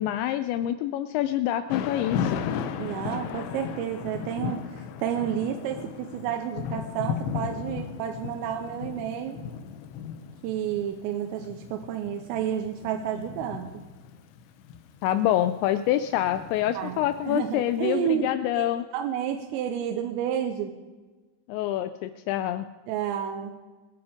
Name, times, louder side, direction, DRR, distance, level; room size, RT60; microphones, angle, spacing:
voice 1, 0.0-2.4 15.0-18.8 21.5-22.6, left 12 dB, 90° left, 11 dB, 2.5 m, -26 dB
Thunder / Rain, 1.7-17.7, left 8 dB, 75° left, 2.9 m, -36 dB
voice 2, 2.8-9.4 10.4-13.7 16.8-18.3 18.6-18.7 18.9-20.8 22.9-23.5, right 9 dB, 90° right, 4 dB, 3.5 m, -30 dB
25.0 x 9.0 x 5.0 m, 1.3 s
omnidirectional pair, 5.8 m